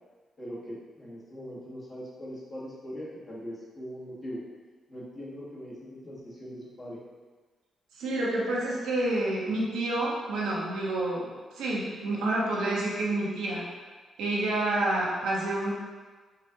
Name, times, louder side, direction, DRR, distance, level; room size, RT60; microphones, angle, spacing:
voice 1, 0.4-4.4 4.9-7.0, equal, 35° left, -6 dB, 1.5 m, -41 dB
voice 2, 8.0-13.7 14.2-15.7, right 2 dB, 85° right, -5 dB, 0.9 m, -29 dB
4.8 x 2.5 x 2.8 m, 1.4 s
supercardioid pair, 55°, 0 cm